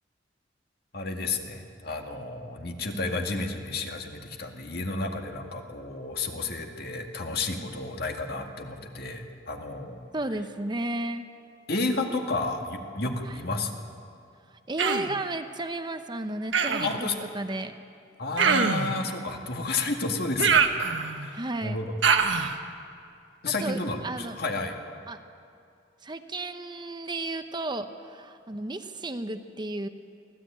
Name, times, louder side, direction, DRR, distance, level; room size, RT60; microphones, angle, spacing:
voice 1, 0.9-10.1 11.7-13.8 16.8-17.2 18.2-20.8 21.2-22.0 23.4-24.8, left 3 dB, 55° left, 3 dB, 2.1 m, -31 dB
voice 2, 10.1-11.3 13.3-13.4 14.7-17.1 17.3-17.8 21.3-21.8 23.5-24.4 25.1-25.2 26.0-29.9, right 2 dB, 25° right, 8 dB, 0.8 m, -33 dB
Human voice, 14.8-15.2 16.5-17.0 18.4-18.9 20.4-21.3 22.0-22.6, right 5 dB, 85° right, 1.3 m, -23 dB
24.0 x 15.5 x 8.8 m, 2.4 s
head